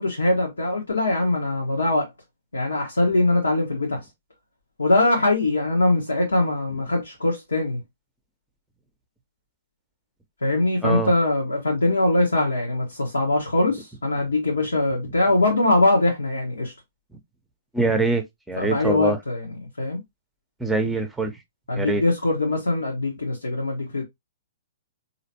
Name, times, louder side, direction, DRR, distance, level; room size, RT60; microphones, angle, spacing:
voice 1, 0.0-2.1 2.5-4.0 4.8-7.8 10.4-16.7 18.6-20.0 21.7-24.0, left 2 dB, 80° left, 1.2 m, -22 dB
voice 2, 17.7-19.2 20.6-21.3 21.8-22.0, right 3 dB, 5° right, 0.8 m, -24 dB
4.1 x 2.8 x 2.8 m
figure-of-eight pair, 115°, 0 cm